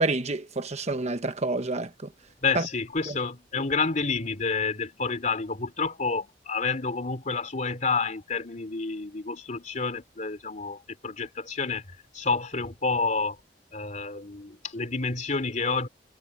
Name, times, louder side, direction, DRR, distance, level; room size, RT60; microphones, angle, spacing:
voice 1, 0.0-1.9 2.5-2.7 3.1-3.2, right 2 dB, 40° right, 1.0 m, -28 dB
voice 2, 2.4-11.8 12.1-13.4 13.7-15.9, left 4 dB, 45° left, 2.9 m, -29 dB
head